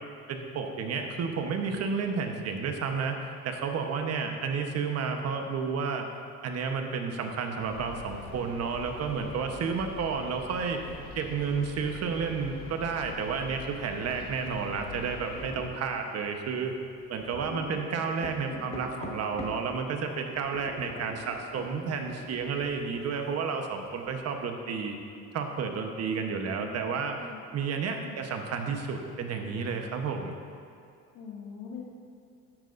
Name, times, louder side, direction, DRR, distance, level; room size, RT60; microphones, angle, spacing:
voice 1, 0.3-3.2 3.4-6.1 6.4-10.8 11.1-16.7 17.1-25.0 25.3-27.2 27.5-30.3, right 5 dB, 55° right, 4 dB, 1.1 m, -31 dB
sound 1, 7.6-15.5, left 3 dB, 60° left, 1.9 m, -44 dB
sound 2, 13.0-19.7 20.0-24.2, left 1 dB, 20° left, 1.5 m, -45 dB
voice 2, 17.4-18.2 18.5-18.8 26.3-27.4 28.0-28.2 31.1-31.8, left 5 dB, 80° left, -2 dB, 2.0 m, -44 dB
11.5 x 11.0 x 2.6 m, 2.3 s
cardioid pair, 105°, 31 cm